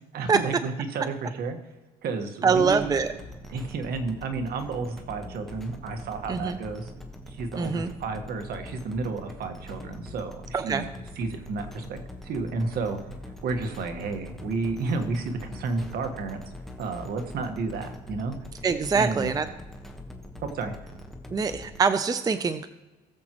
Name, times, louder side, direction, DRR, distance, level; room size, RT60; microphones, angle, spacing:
voice 1, 0.1-1.6 2.0-2.9 3.5-6.9 7.3-10.9 11.2-12.0 12.2-13.0 13.4-16.4 16.8-18.3 18.9-19.3 20.4-20.8, right 3 dB, 65° right, 6 dB, 1.5 m, -31 dB
voice 2, 2.4-3.1 6.3-6.6 7.6-7.9 10.5-10.9 18.6-19.5 21.3-22.7, right 5 dB, 20° right, 11 dB, 0.5 m, -24 dB
sound 1, 2.5-21.8, left 1 dB, ahead, 1.2 m, -43 dB
19.5 x 7.3 x 3.0 m, 1.1 s
cardioid pair, 110°, 17 cm